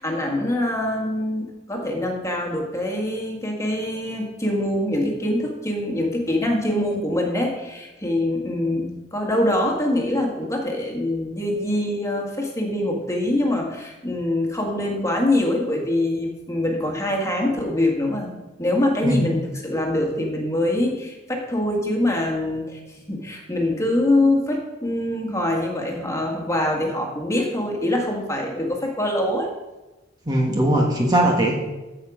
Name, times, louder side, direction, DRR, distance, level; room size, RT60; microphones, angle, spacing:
voice 1, 0.0-22.8 23.1-29.5, left 1 dB, 15° left, 0 dB, 1.9 m, -24 dB
voice 2, 30.2-31.6, right 1 dB, 20° right, 0 dB, 1.5 m, -20 dB
15.0 x 5.7 x 5.0 m, 1.1 s
head